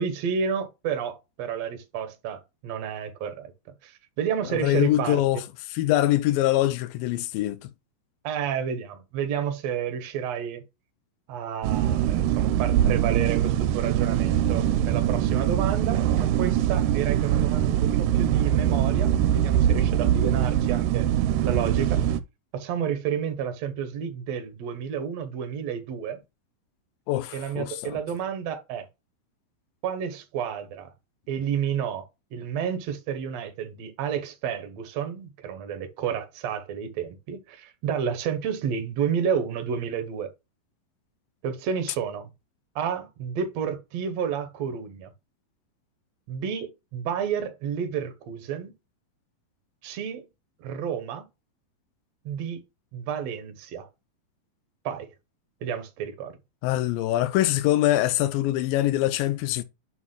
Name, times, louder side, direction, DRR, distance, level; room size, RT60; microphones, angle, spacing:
voice 1, 0.0-3.5 3.8-5.4 8.2-10.6 11.3-21.1 21.4-22.0 22.5-26.2 27.3-28.9 29.8-30.9 31.3-32.1 32.3-40.3 41.4-42.3 42.8-45.1 46.3-48.7 49.8-50.3 50.6-51.3 52.3-52.6 52.9-53.9 54.9-55.1 55.6-56.3, right 8 dB, 65° right, 1.8 m, -30 dB
voice 2, 4.5-5.4 5.7-7.7 27.1-28.0 56.6-59.6, left 14 dB, 90° left, 2.3 m, -24 dB
sound 1, 11.6-22.2, right 10 dB, 85° right, 2.2 m, -23 dB
7.1 x 6.4 x 2.2 m
omnidirectional pair, 4.0 m